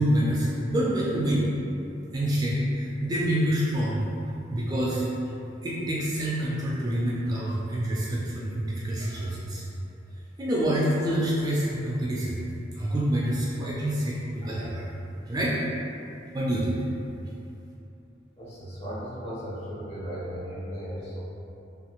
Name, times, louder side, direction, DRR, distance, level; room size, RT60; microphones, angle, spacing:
voice 1, 0.0-1.5 2.1-4.1 4.5-5.1 5.6-9.6 10.4-12.4 12.8-14.8 15.3-15.6 16.3-16.8, right 1 dB, 20° right, -6 dB, 0.3 m, -27 dB
voice 2, 18.4-21.2, equal, 35° left, -8 dB, 0.9 m, -36 dB
3.1 x 2.4 x 2.9 m, 2.7 s
head